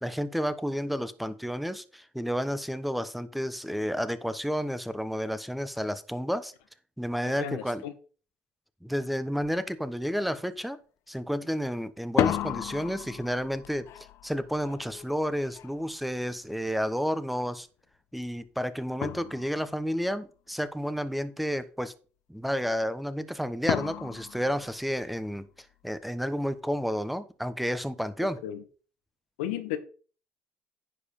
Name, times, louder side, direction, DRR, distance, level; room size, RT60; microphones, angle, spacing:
voice 1, 0.0-6.5 7.0-7.8 8.8-10.8 11.1-13.9 14.2-17.7 18.1-21.9 22.3-25.5 25.8-28.4, equal, ahead, 1.0 m, -31 dB
voice 2, 7.2-7.9 28.4-28.6 29.4-29.8, left 11 dB, 85° left, 1.2 m, -34 dB
sound 1, 9.4-9.6 10.0-10.5 12.0-16.8 18.5-18.6 19.0-19.9 23.7-25.4, left 12 dB, 65° left, 0.6 m, -34 dB
10.0 x 4.9 x 5.3 m
hypercardioid pair, 70°, 5 cm